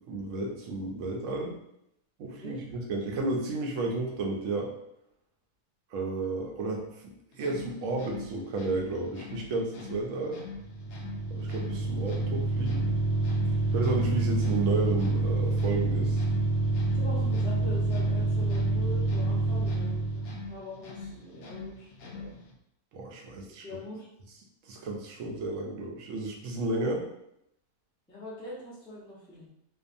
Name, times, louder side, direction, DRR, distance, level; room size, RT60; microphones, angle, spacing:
voice 1, 0.0-1.6 2.2-4.7 5.9-10.4 11.3-12.9 13.4-16.2 22.9-23.8 24.7-27.0, right 3 dB, 70° right, 0 dB, 0.9 m, -32 dB
sound 1, 7.3-22.6, left 4 dB, 75° left, 0.5 m, -44 dB
sound 2, 10.6-20.5, right 2 dB, 90° right, 1.3 m, -27 dB
voice 2, 16.9-22.4 23.6-24.1 26.8-27.1 28.1-29.5, left 1 dB, 5° left, -8 dB, 0.3 m, -43 dB
2.6 x 2.2 x 2.5 m, 0.78 s
omnidirectional pair, 1.5 m